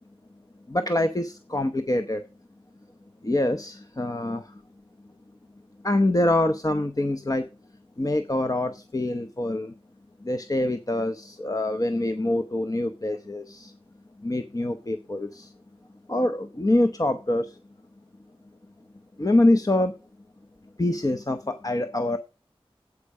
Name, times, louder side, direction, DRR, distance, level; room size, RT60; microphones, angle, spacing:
voice 1, 0.7-2.2 3.2-4.5 5.8-7.4 8.0-9.7 10.2-13.7 14.2-15.5 16.1-17.6 19.2-19.9 20.8-22.2, left 1 dB, 35° left, 7 dB, 0.8 m, -25 dB
8.5 x 8.2 x 5.4 m, 0.32 s
wide cardioid pair, 65°, 10 cm